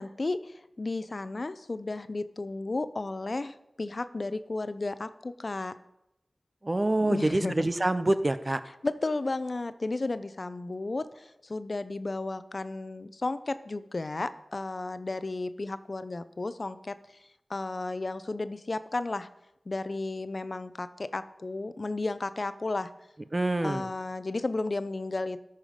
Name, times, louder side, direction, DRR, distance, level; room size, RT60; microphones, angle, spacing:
voice 1, 0.0-5.7 7.0-7.7 8.8-17.0 17.5-19.3 19.7-22.9 23.6-25.4, left 2 dB, 55° left, 13 dB, 0.5 m, -33 dB
voice 2, 6.6-8.6 23.3-23.9, right 1 dB, 35° right, 12 dB, 0.6 m, -26 dB
13.5 x 5.7 x 5.1 m, 0.84 s
wide cardioid pair, 50°, 0 cm